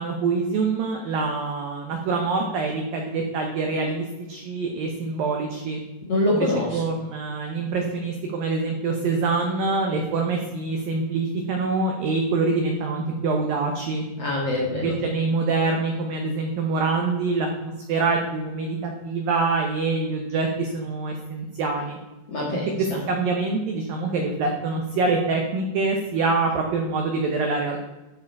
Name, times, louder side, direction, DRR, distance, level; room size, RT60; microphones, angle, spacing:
voice 1, 0.0-5.8 6.7-14.0 14.7-22.0 22.8-27.8, right 3 dB, 80° right, 2 dB, 2.0 m, -25 dB
voice 2, 6.1-6.8 14.2-14.9 22.3-23.0, left 1 dB, 55° left, -5 dB, 1.8 m, -25 dB
13.5 x 4.9 x 4.6 m, 1.1 s
omnidirectional pair, 5.4 m